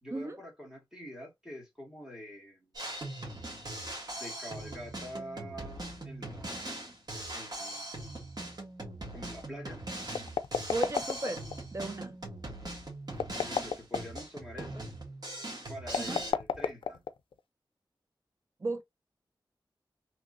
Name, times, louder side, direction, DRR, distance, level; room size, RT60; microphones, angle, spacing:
voice 1, 0.0-2.7 4.2-6.7 7.3-7.9 9.1-9.8 13.4-14.9 15.7-17.0, equal, 5° right, 1.7 m, -46 dB
Drum kit, 2.7-16.3, right 1 dB, 50° right, 1.4 m, -41 dB
sound 1, 10.1-11.6 13.1-14.2 15.9-17.4, left 7 dB, 85° left, 0.3 m, -32 dB
voice 2, 10.7-11.4 11.7-12.2 16.0-16.2 18.6-18.8, right 2 dB, 35° right, 0.5 m, -34 dB
3.0 x 2.9 x 2.5 m
wide cardioid pair, 110°, 9 cm